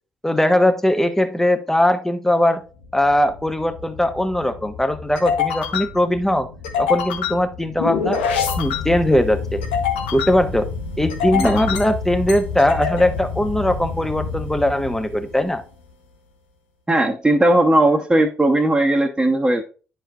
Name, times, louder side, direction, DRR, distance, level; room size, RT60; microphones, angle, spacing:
voice 1, 0.2-2.6 2.9-6.5 6.8-8.2 8.6-9.6 10.1-10.7 11.0-15.6, left 1 dB, 5° left, 9 dB, 1.0 m, -20 dB
sound 1, 2.8-15.6, left 6 dB, 85° left, 1.0 m, -27 dB
voice 2, 16.9-19.6, right 1 dB, 15° right, 1 dB, 1.1 m, -17 dB
10.0 x 4.6 x 2.4 m, 0.36 s
hypercardioid pair, 45°, 5 cm